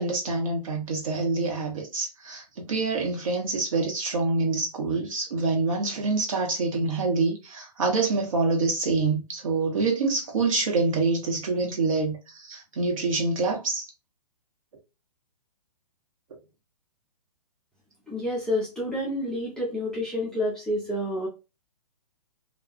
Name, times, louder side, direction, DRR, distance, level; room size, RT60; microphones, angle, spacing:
voice 1, 0.0-13.8, right 3 dB, 55° right, 1.0 m, -26 dB
voice 2, 18.1-21.3, left 1 dB, 5° left, 0.5 m, -29 dB
2.4 x 2.3 x 2.4 m
figure-of-eight pair, 120°, 21 cm